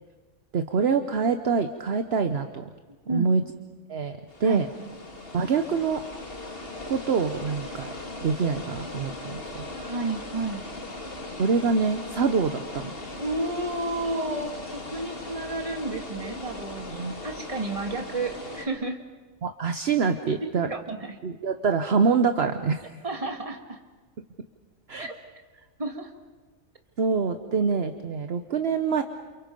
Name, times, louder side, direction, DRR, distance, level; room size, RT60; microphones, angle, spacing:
voice 1, 0.5-2.7 3.1-3.4 3.9-4.7 5.3-6.0 6.9-7.9 8.2-9.6 11.4-12.9 17.0-17.2 19.4-20.7 21.2-22.9 24.9-25.1 27.0-29.0, right 5 dB, 55° right, 7 dB, 1.1 m, -25 dB
sound 1, 4.3-18.6, left 2 dB, 45° left, 2.5 m, -38 dB
voice 2, 4.4-4.9 9.7-10.6 13.2-19.0 20.7-21.2 23.0-23.8 25.0-25.2 25.8-26.1, right 2 dB, 25° right, 4 dB, 1.9 m, -32 dB
29.0 x 28.5 x 5.3 m, 1.3 s
omnidirectional pair, 1.4 m